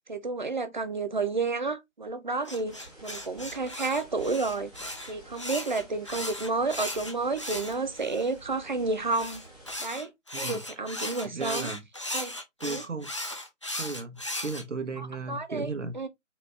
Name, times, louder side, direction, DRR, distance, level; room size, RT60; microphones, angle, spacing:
voice 1, 0.1-4.7 5.1-9.4 9.8-10.1 10.4-11.7 12.1-12.3 12.6-12.8 15.0-15.7 15.9-16.1, right 3 dB, 40° right, 0.5 m, -31 dB
sound 1, 2.5-8.3 9.1-14.6, left 1 dB, 25° left, 0.5 m, -37 dB
sound 2, 2.6-9.8, right 2 dB, ahead, 0.9 m, -51 dB
voice 2, 10.3-11.8 12.6-13.1 13.7-15.9, right 3 dB, 70° right, 1.1 m, -36 dB
4.2 x 3.0 x 3.3 m
figure-of-eight pair, 145°, 38 cm